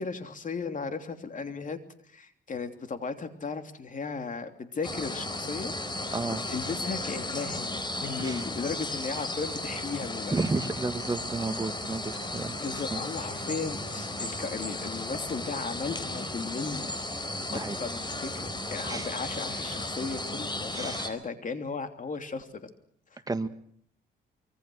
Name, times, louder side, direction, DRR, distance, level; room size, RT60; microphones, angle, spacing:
voice 1, 0.0-1.8 2.1-5.7 6.3-10.3 12.6-16.9 17.1-22.7, left 4 dB, 40° left, 7 dB, 3.1 m, -36 dB
sound 1, 4.8-21.1, left 2 dB, 20° left, 4.1 m, -35 dB
voice 2, 10.3-12.6 12.9-13.0 17.5-17.8 18.9-19.1 20.7-21.1 23.3-23.5, right 3 dB, 20° right, 9 dB, 1.8 m, -32 dB
25.5 x 23.5 x 6.4 m, 0.65 s
cardioid pair, 90°, 20 cm